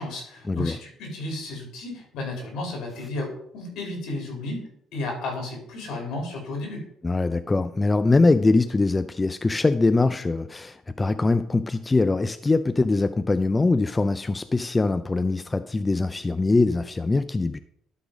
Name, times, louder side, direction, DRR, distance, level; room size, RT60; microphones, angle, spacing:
voice 1, 0.0-6.8, left 2 dB, 75° left, 2 dB, 3.2 m, -33 dB
voice 2, 7.0-17.6, left 3 dB, 20° left, 11 dB, 0.4 m, -22 dB
11.5 x 3.9 x 5.0 m, 0.69 s
supercardioid pair, 80°, 0 cm